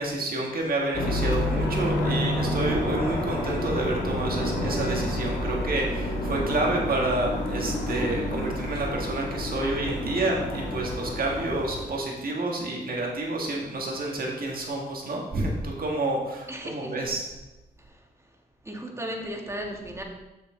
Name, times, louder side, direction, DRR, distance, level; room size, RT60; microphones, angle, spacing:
voice 1, 0.0-17.3, right 2 dB, 60° right, -1 dB, 1.7 m, -29 dB
sound 1, 0.9-11.9, left 1 dB, 80° left, 2.0 m, -29 dB
voice 2, 16.5-17.2 17.8-18.4 18.6-20.0, equal, 15° right, 1 dB, 1.6 m, -36 dB
6.7 x 6.5 x 3.8 m, 1.0 s
cardioid pair, 60°, 17 cm